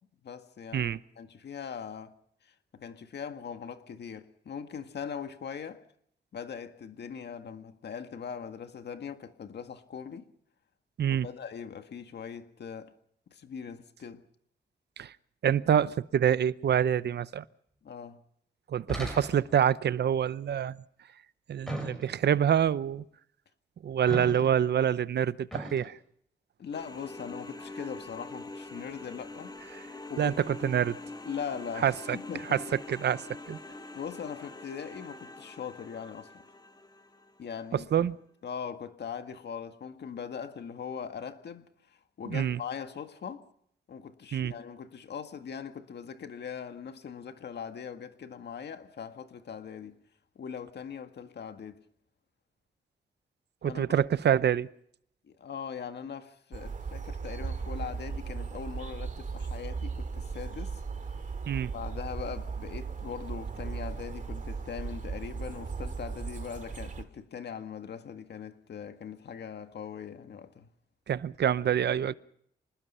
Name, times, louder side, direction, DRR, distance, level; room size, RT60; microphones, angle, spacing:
voice 1, 0.2-2.1 2.4-5.8 6.3-10.3 11.1-12.9 13.3-14.2 17.8-18.2 26.6-29.6 30.1-30.5 31.2-32.6 33.9-36.4 37.4-37.9 38.4-43.5 43.9-50.0 50.4-51.8 53.6-53.8 55.2-60.8 61.2-61.3 61.6-70.7, left 7 dB, 70° left, 1.8 m, -41 dB
voice 2, 15.4-17.4 18.7-20.8 21.5-23.0 23.8-25.9 30.2-31.0 31.8-31.9 32.5-32.6 32.9-33.2 33.5-33.6 37.9-38.1 42.3-42.6 44.3-44.5 53.6-54.7 61.5-61.7 71.1-72.1, right 9 dB, 70° right, 0.8 m, -26 dB
sound 1, 18.9-19.7 21.7-22.4 24.1-24.7 25.5-25.9, right 1 dB, ahead, 6.6 m, -38 dB
sound 2, 26.7-37.5, left 2 dB, 25° left, 2.3 m, -45 dB
sound 3, 56.5-67.0, right 5 dB, 45° right, 2.4 m, -37 dB
26.0 x 20.0 x 5.6 m
cardioid pair, 95°, 18 cm